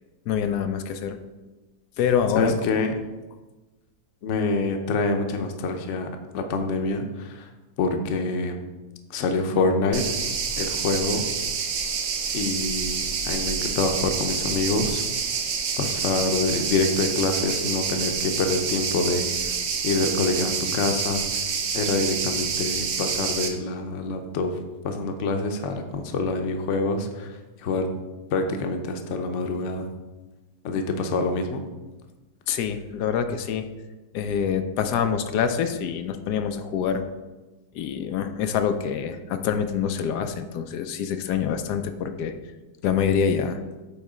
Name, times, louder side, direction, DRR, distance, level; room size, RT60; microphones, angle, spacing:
voice 1, 0.3-1.2 2.0-2.5 32.5-33.7 34.1-37.0 37.7-42.3 42.8-43.6, left 7 dB, 90° left, 8 dB, 1.2 m, -25 dB
voice 2, 2.3-2.9 4.2-7.5 7.8-8.6 9.1-10.1 10.6-11.2 12.3-15.0 15.8-19.6 19.8-21.4 21.7-24.6 24.8-27.9 28.3-29.9 30.6-31.6, left 3 dB, 55° left, 5 dB, 0.9 m, -26 dB
sound 1, 9.9-23.5, right 6 dB, 60° right, 0.9 m, -28 dB
8.3 x 3.2 x 4.9 m, 1.2 s
omnidirectional pair, 1.7 m